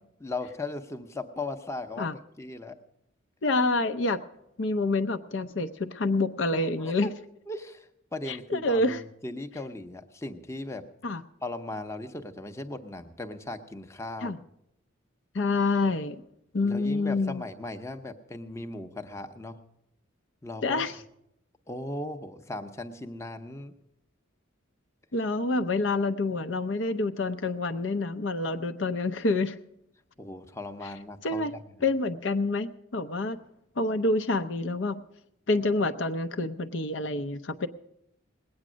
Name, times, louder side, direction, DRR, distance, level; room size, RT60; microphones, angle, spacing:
voice 1, 0.2-2.8 6.8-7.1 7.5-10.8 11.4-14.4 16.6-19.6 20.4-20.8 21.7-23.7 30.2-31.6, left 2 dB, 15° left, 6 dB, 0.7 m, -38 dB
voice 2, 3.4-4.2 4.6-7.1 8.3-9.0 11.0-11.2 14.2-14.4 15.3-16.2 16.5-17.4 20.6-21.0 25.1-29.6 31.2-31.5 31.8-33.4 33.8-35.0 35.5-37.7, left 2 dB, 60° left, 9 dB, 0.6 m, -27 dB
19.5 x 8.8 x 6.2 m, 0.79 s
head